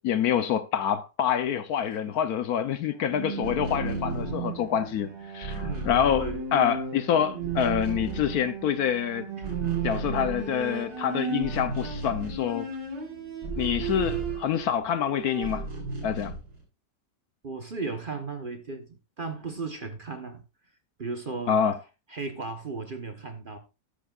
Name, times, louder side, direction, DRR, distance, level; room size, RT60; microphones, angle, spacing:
voice 1, 0.0-9.3 9.8-12.7 13.6-15.7 16.0-16.3 21.5-21.8, left 9 dB, 65° left, 1.1 m, -26 dB
Bowed string instrument, 2.9-14.7 15.0-15.8, right 6 dB, 80° right, 2.4 m, -35 dB
sound 1, 3.3-7.0 7.3-9.0 9.3-14.9 15.4-16.6, right 2 dB, 60° right, 5.0 m, -36 dB
voice 2, 5.6-6.4 9.4-9.7 13.9-14.2 17.4-20.4 21.0-21.6 22.1-23.6, right 4 dB, 35° right, 1.0 m, -36 dB
13.5 x 10.0 x 2.4 m
omnidirectional pair, 1.9 m